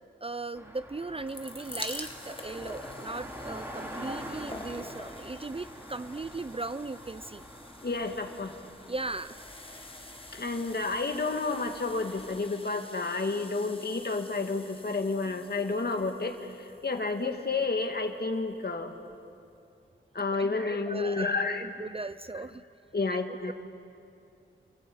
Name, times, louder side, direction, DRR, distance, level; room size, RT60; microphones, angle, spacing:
voice 1, 0.2-7.4 8.9-9.5 20.3-20.4 20.9-22.6 23.1-23.2 23.5-23.6, right 3 dB, 25° right, 13 dB, 0.5 m, -38 dB
sound 1, 0.5-12.5, equal, 10° right, 3.6 m, -45 dB
sound 2, 1.0-18.1 18.8-18.9 19.1-19.2, left 2 dB, 25° left, 1.7 m, -47 dB
voice 2, 7.8-8.6 10.3-18.9 20.1-21.7 22.9-23.5, left 3 dB, 50° left, 5 dB, 1.8 m, -30 dB
27.5 x 14.0 x 8.6 m, 2.6 s
wide cardioid pair, 60°, 21 cm